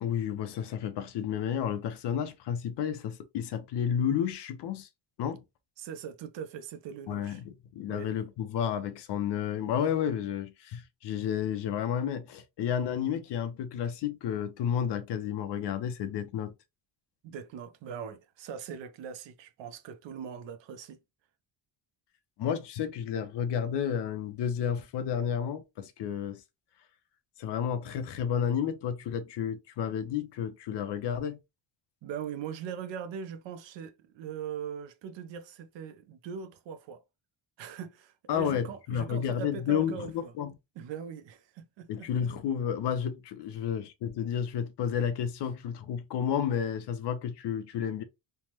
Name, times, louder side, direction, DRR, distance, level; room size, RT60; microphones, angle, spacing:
voice 1, 0.0-4.9 5.2-5.4 7.1-16.5 22.4-26.4 27.4-31.4 38.3-40.5 41.9-48.0, left 8 dB, 60° left, 0.6 m, -31 dB
voice 2, 5.8-7.4 7.9-8.1 17.2-21.0 32.0-37.0 37.6-40.3 40.8-42.1, right 7 dB, 70° right, 0.6 m, -41 dB
3.3 x 2.1 x 2.8 m
cardioid pair, 170°, 46 cm